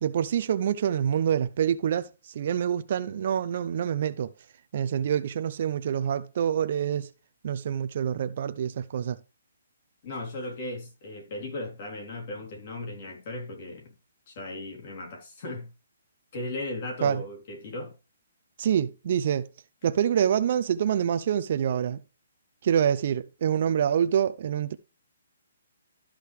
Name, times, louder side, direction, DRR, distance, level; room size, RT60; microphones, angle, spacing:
voice 1, 0.0-2.1 2.3-4.3 4.7-7.1 7.4-9.2 17.0-17.2 18.6-19.5 19.8-22.0 22.6-24.8, right 9 dB, 45° right, 0.5 m, -26 dB
voice 2, 10.0-13.9 14.3-15.7 16.3-17.9, left 2 dB, 40° left, 3.2 m, -37 dB
13.0 x 4.9 x 3.4 m
hypercardioid pair, 170°, 0 cm